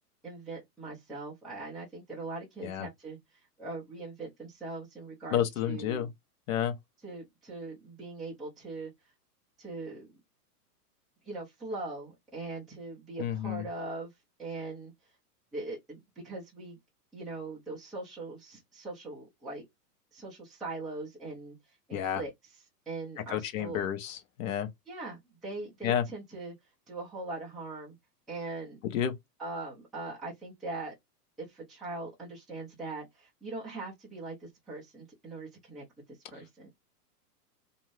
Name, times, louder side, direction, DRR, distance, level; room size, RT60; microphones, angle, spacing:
voice 1, 0.2-5.4 5.6-6.1 7.0-9.1 9.6-10.1 11.2-14.9 15.5-16.8 17.1-19.6 20.1-22.3 22.9-23.8 24.9-26.5 26.9-28.0 28.3-28.8 29.4-30.9 31.4-36.7, right 3 dB, ahead, 0.4 m, -41 dB
voice 2, 5.3-6.1 6.5-6.7 13.2-13.6 21.9-22.2 23.3-24.7 25.8-26.0 28.8-29.1, left 9 dB, 55° left, 0.9 m, -30 dB
2.6 x 2.5 x 3.1 m
hypercardioid pair, 140°, 48 cm